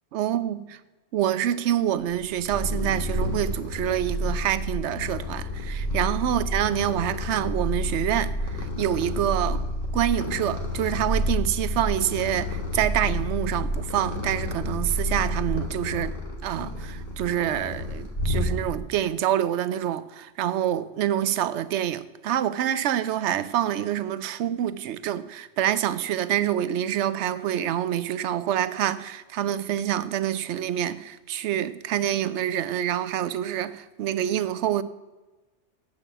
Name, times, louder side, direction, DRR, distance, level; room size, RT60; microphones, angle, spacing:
voice 1, 0.1-0.6 1.1-9.6 9.9-16.1 16.4-34.8, right 11 dB, 80° right, 0.9 m, -26 dB
Purr, 2.1-18.9, left 1 dB, 50° left, 1.9 m, -30 dB
8.1 x 7.2 x 8.1 m
omnidirectional pair, 1.2 m